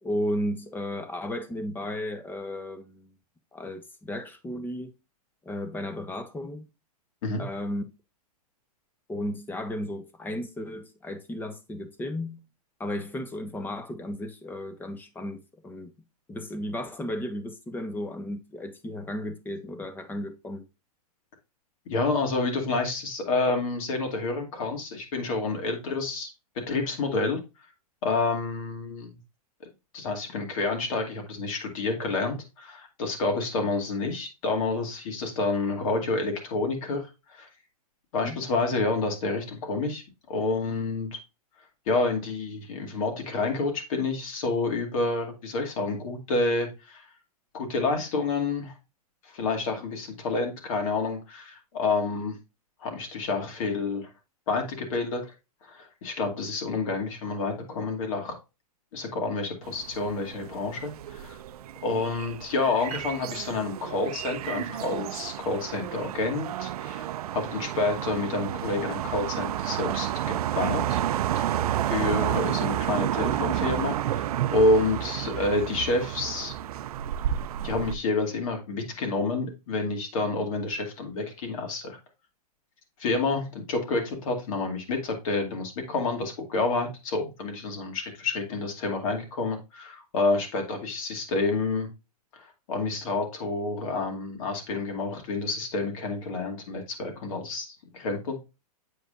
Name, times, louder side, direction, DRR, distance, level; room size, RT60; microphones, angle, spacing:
voice 1, 0.0-3.1 3.5-4.9 5.4-6.7 7.4-7.8 9.1-12.4 12.8-15.9 16.3-20.6 38.2-38.4, left 1 dB, 10° left, 0.9 m, -34 dB
voice 2, 21.9-26.3 26.7-27.4 28.0-29.2 29.9-37.5 38.1-40.0 40.3-41.2 41.9-47.1 47.5-48.7 49.2-52.4 52.8-54.1 54.5-55.3 55.7-58.4 58.9-61.4 61.8-71.0 71.3-71.5 71.9-76.5 77.6-82.0 83.0-91.9 92.3-98.4, left 3 dB, 55° left, 2.5 m, -29 dB
sound 1, 59.6-78.0, right 11 dB, 70° right, 0.5 m, -31 dB
8.0 x 4.8 x 2.4 m
hypercardioid pair, 135°, 20 cm